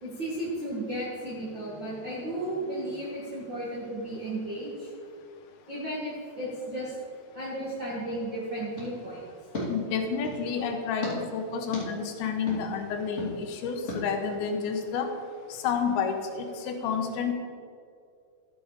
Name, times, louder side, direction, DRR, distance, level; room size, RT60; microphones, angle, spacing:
voice 1, 0.0-4.9 5.7-6.9 7.3-9.2, right 1 dB, 45° right, -8 dB, 1.5 m, -34 dB
sound 1, 8.7-10.5 11.0-11.1 11.7-11.8 12.5-12.6 13.2-13.3 13.9-14.0, left 1 dB, 20° left, 2.2 m, -36 dB
voice 2, 9.7-15.1 15.5-17.3, left 6 dB, 80° left, 5 dB, 3.0 m, -30 dB
13.0 x 7.6 x 5.0 m, 2.3 s
omnidirectional pair, 5.3 m